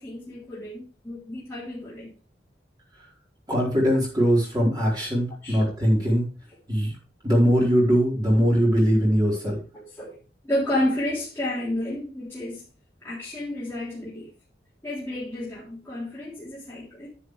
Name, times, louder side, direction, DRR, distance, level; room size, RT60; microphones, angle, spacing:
voice 1, 0.0-2.1 5.4-5.7 9.7-10.2 10.4-12.6 13.0-14.3 14.8-17.1, left 1 dB, 15° left, -8 dB, 3.6 m, -31 dB
voice 2, 3.5-6.2 6.7-6.9 7.2-9.6, equal, 20° right, -4 dB, 4.4 m, -21 dB
9.8 x 9.2 x 3.4 m, 0.37 s
head